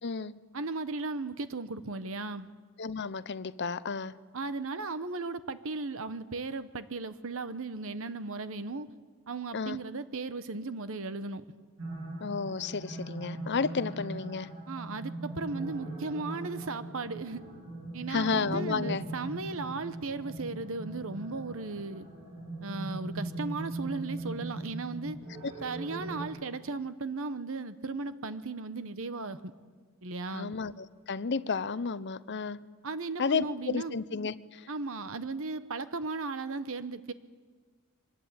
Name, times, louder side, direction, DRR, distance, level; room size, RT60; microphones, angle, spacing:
voice 1, 0.0-0.4 2.8-4.2 9.5-9.8 12.2-14.5 18.1-19.0 25.4-25.5 30.3-32.6 33.2-34.7, left 5 dB, 50° left, 16 dB, 0.7 m, -32 dB
voice 2, 0.5-2.5 4.3-8.9 9.3-11.4 14.7-17.4 17.9-22.1 22.6-25.2 25.6-29.5 30.0-30.5 32.8-34.0 34.7-37.1, right 3 dB, 65° right, 12 dB, 0.9 m, -36 dB
sound 1, 11.8-26.2, right 2 dB, 90° right, 8.0 m, -40 dB
25.0 x 20.5 x 8.8 m, 1.5 s
head